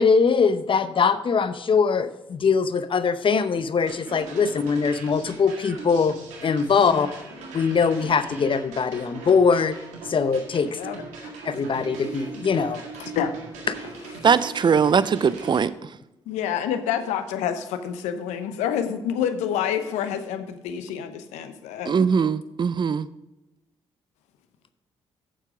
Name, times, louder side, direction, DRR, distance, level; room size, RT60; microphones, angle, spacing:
voice 1, 0.0-7.1 7.5-9.8 10.0-10.8 11.4-12.9 13.7-13.8, left 5 dB, 45° left, 13 dB, 0.8 m, -22 dB
sound 1, 3.8-15.7, right 4 dB, 80° right, 1.8 m, -40 dB
voice 2, 10.7-11.3 13.0-13.3 16.3-21.9, left 9 dB, 80° left, 10 dB, 0.8 m, -28 dB
voice 3, 14.2-15.9 21.9-23.1, right 6 dB, 40° right, 17 dB, 0.5 m, -21 dB
8.9 x 7.4 x 5.0 m, 0.98 s
hypercardioid pair, 45°, 12 cm